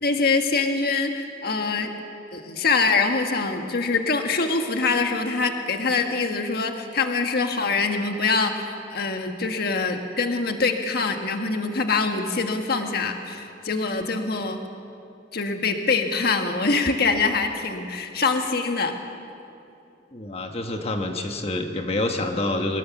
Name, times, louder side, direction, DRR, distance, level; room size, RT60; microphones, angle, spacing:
voice 1, 0.0-1.9 2.3-14.6 15.3-18.9, left 4 dB, 60° left, 5 dB, 1.5 m, -24 dB
voice 2, 20.1-22.8, left 2 dB, 35° left, 4 dB, 1.4 m, -27 dB
24.5 x 19.0 x 7.1 m, 2.7 s
head